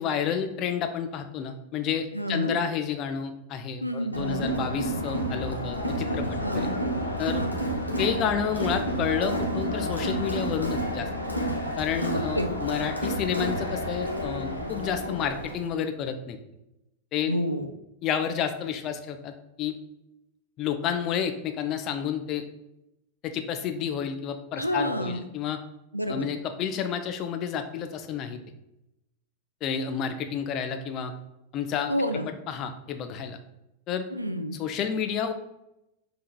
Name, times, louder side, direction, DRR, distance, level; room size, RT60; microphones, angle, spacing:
voice 1, 0.0-6.7 7.2-7.4 8.0-11.1 11.8-16.4 17.1-17.4 18.0-19.3 19.6-19.7 20.6-22.4 23.2-25.6 26.1-28.4 29.6-31.1 31.5-31.9 32.5-33.4 33.9-34.1 34.6-35.3, left 8 dB, 35° left, 7 dB, 0.4 m, -30 dB
voice 2, 2.1-2.6 3.8-4.4 6.4-6.8 7.4-7.5 12.1-12.5 17.3-17.7 24.6-25.2 25.9-26.3 31.9-32.3 34.1-34.6, equal, 90° right, 7 dB, 0.3 m, -29 dB
Crowd, 4.1-15.7, equal, 85° left, 0.6 m, -30 dB
5.5 x 2.8 x 2.2 m, 0.87 s
figure-of-eight pair, 90°, 0 cm